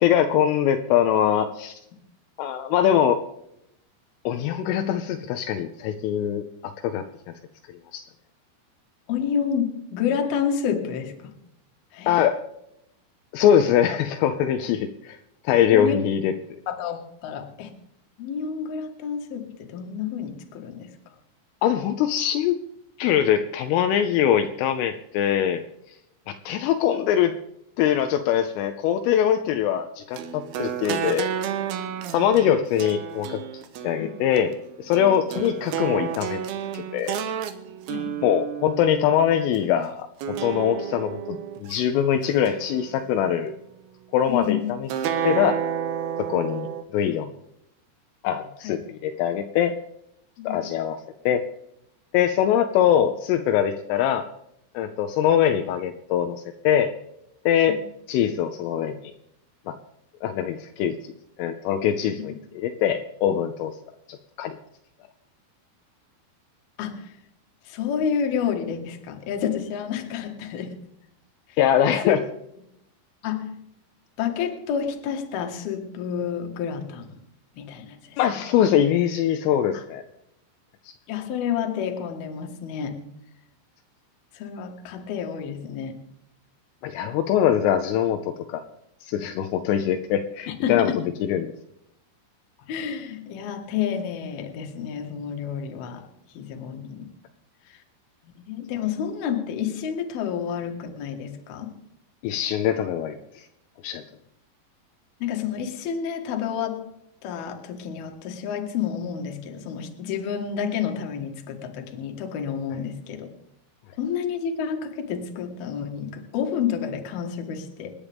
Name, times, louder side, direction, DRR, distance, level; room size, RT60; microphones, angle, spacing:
voice 1, 0.0-1.8 2.4-3.2 4.3-7.0 7.9-8.0 12.1-12.4 13.3-15.2 15.4-16.3 21.6-22.6 23.0-25.6 26.3-27.3 27.8-31.3 32.1-33.4 33.8-34.5 34.8-36.4 36.7-37.2 38.2-43.5 44.1-44.9 45.2-45.6 46.2-47.3 48.2-49.7 50.5-51.0 51.3-51.4 52.1-54.3 54.7-56.9 57.5-57.8 58.1-59.0 59.7-59.8 60.2-61.1 61.4-63.8 64.1-64.6 71.6-72.2 78.2-80.0 86.8-88.6 89.0-90.9 91.2-91.5 102.2-103.4 103.8-104.0, left 9 dB, 80° left, 7 dB, 3.1 m, -23 dB
voice 2, 9.1-11.1 11.9-12.3 15.7-16.0 16.7-17.7 18.2-20.9 34.0-34.2 37.9-38.2 44.3-44.7 48.6-48.8 50.4-50.7 57.7-57.8 66.8-67.2 67.6-70.7 71.5-71.6 72.0-72.2 73.2-73.7 74.2-77.1 77.6-78.4 79.7-79.8 81.1-83.0 84.3-86.0 90.5-91.0 92.7-96.1 96.3-97.1 97.7-97.8 98.2-101.8 105.2-106.9 107.2-113.3 114.0-117.9, left 7 dB, 60° left, 4 dB, 2.9 m, -29 dB
sound 1, 30.2-39.6 40.2-41.8 42.2-43.4 44.9-46.8, right 8 dB, 80° right, 2.3 m, -31 dB
28.5 x 9.9 x 3.5 m, 0.80 s
omnidirectional pair, 6.0 m